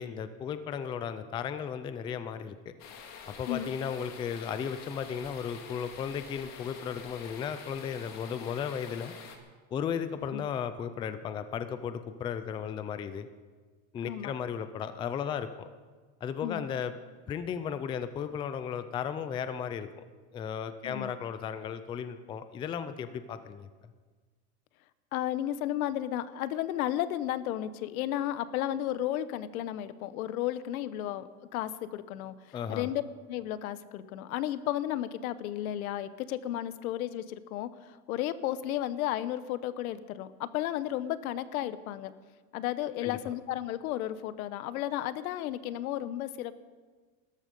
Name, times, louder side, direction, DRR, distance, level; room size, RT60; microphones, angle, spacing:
voice 1, 0.0-2.7 3.3-9.1 9.7-13.3 13.9-15.7 16.2-16.9 17.3-20.0 20.3-23.7 32.5-32.9 43.0-43.2, left 7 dB, 15° left, 11 dB, 0.3 m, -35 dB
sound 1, 2.8-9.4, left 6 dB, 40° left, 2.2 m, -47 dB
voice 2, 14.0-14.3 16.4-16.7 20.8-21.1 25.1-33.0 33.3-42.1 42.5-46.6, left 12 dB, 80° left, 15 dB, 1.0 m, -33 dB
17.5 x 13.5 x 5.3 m, 1.4 s
supercardioid pair, 150°, 42 cm